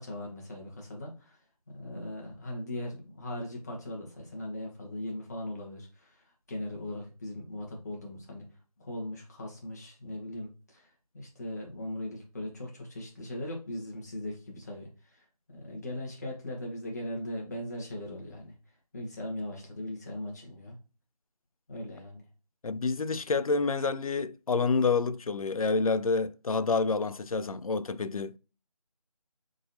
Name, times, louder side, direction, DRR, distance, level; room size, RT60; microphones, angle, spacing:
voice 1, 0.0-1.4 1.7-6.2 6.5-8.5 8.8-10.9 11.1-15.2 15.5-18.5 18.9-20.8 21.7-22.2, left 1 dB, 25° left, 1.3 m, -39 dB
voice 2, 22.6-28.4, left 4 dB, 65° left, 0.4 m, -28 dB
4.0 x 3.7 x 2.6 m
figure-of-eight pair, 165°, 20 cm